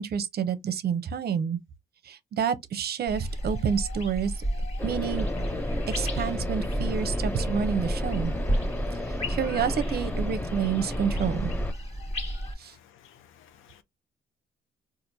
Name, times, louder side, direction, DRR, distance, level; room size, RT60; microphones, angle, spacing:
voice 1, 0.0-1.6 2.0-4.3 4.8-5.3 5.9-8.3 9.1-11.5 12.6-12.7, right 7 dB, 55° right, 0.6 m, -29 dB
sound 1, 3.1-12.5, equal, 30° left, 1.6 m, -32 dB
sound 2, 4.8-11.7, left 1 dB, 10° left, 0.4 m, -32 dB
voice 2, 12.6-13.8, left 9 dB, 85° left, 0.6 m, -56 dB
4.3 x 2.5 x 2.6 m
cardioid pair, 90°, 20 cm